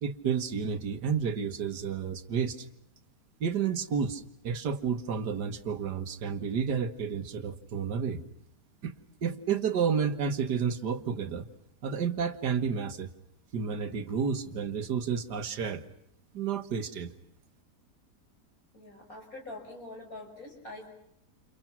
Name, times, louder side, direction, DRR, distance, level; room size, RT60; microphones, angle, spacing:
voice 1, 0.0-2.7 3.4-8.2 8.8-8.9 9.2-11.5 11.8-13.1 13.5-15.8 16.3-17.1, right 6 dB, 90° right, 9 dB, 2.0 m, -31 dB
voice 2, 18.7-20.9, left 2 dB, 55° left, 2 dB, 6.5 m, -44 dB
29.5 x 29.0 x 6.0 m, 0.74 s
omnidirectional pair, 1.7 m